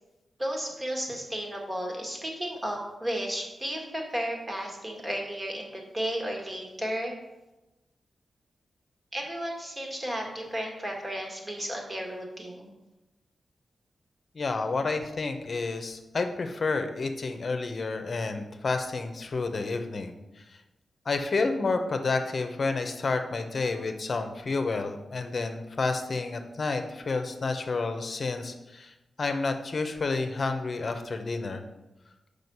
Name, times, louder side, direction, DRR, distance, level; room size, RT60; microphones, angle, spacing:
voice 1, 0.4-7.1 9.1-12.7, equal, 25° right, 0 dB, 1.8 m, -33 dB
voice 2, 14.3-20.6 21.0-31.6, left 3 dB, 50° left, 6 dB, 0.8 m, -30 dB
6.3 x 5.2 x 5.5 m, 1.0 s
wide cardioid pair, 90°, 0 cm